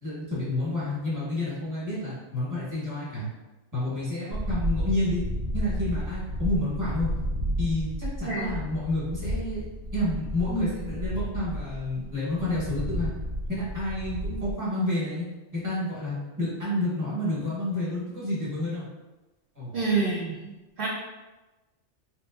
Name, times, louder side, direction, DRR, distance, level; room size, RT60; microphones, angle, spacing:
voice 1, 0.0-3.3 3.7-5.2 5.5-7.1 7.6-9.6 9.9-13.1 13.5-15.2 15.5-18.9 19.5-19.8, left 1 dB, 15° right, -9 dB, 1.2 m, -29 dB
sound 1, 4.3-14.5, equal, 85° right, 1.3 m, -32 dB
voice 2, 19.7-20.4 20.8-20.9, right 4 dB, 55° right, -7 dB, 0.7 m, -26 dB
3.6 x 2.5 x 2.4 m, 1.1 s
omnidirectional pair, 1.2 m